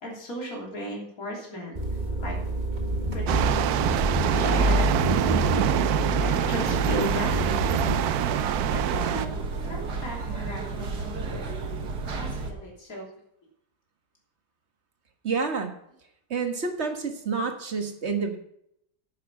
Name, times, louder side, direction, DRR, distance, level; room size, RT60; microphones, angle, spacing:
voice 1, 0.0-1.8 2.2-2.4 3.1-5.1 5.5-7.9 8.7-11.4 12.2-13.0, equal, 60° left, -2 dB, 3.7 m, -36 dB
sound 1, 1.8-8.0, equal, 30° right, 1.6 m, -27 dB
sound 2, 3.3-9.3, right 12 dB, 75° right, 1.1 m, -25 dB
sound 3, 6.6-12.5, right 3 dB, 90° right, 2.0 m, -32 dB
voice 2, 15.2-15.7 16.3-18.4, right 5 dB, 45° right, 5 dB, 1.6 m, -28 dB
10.0 x 8.9 x 5.9 m, 0.75 s
omnidirectional pair, 1.7 m